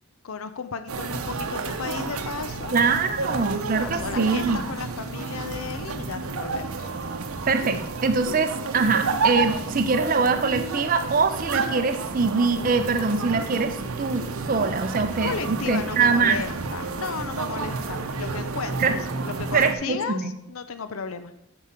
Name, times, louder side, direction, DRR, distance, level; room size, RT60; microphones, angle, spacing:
voice 1, 0.2-2.7 3.8-6.9 15.2-21.3, left 5 dB, 75° left, 11 dB, 0.6 m, -34 dB
sound 1, 0.9-19.7, right 4 dB, 85° right, 0.8 m, -30 dB
voice 2, 2.7-4.6 7.5-16.4 18.8-19.0 19.5-20.3, right 4 dB, 40° right, 7 dB, 0.5 m, -23 dB
8.5 x 4.9 x 5.7 m, 0.81 s
head